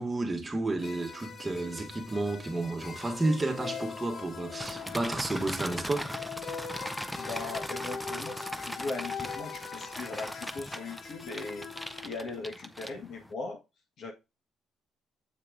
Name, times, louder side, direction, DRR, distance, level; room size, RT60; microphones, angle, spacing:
voice 1, 0.0-6.2, right 2 dB, 15° right, 1.5 m, -31 dB
sound 1, 0.8-12.1, left 6 dB, 40° left, 0.8 m, -42 dB
sound 2, 4.6-13.3, equal, 5° left, 0.6 m, -39 dB
voice 2, 7.2-11.7 12.0-13.6 14.0-14.1, left 3 dB, 55° left, 1.8 m, -39 dB
7.6 x 4.3 x 3.8 m
cardioid pair, 115°, 0 cm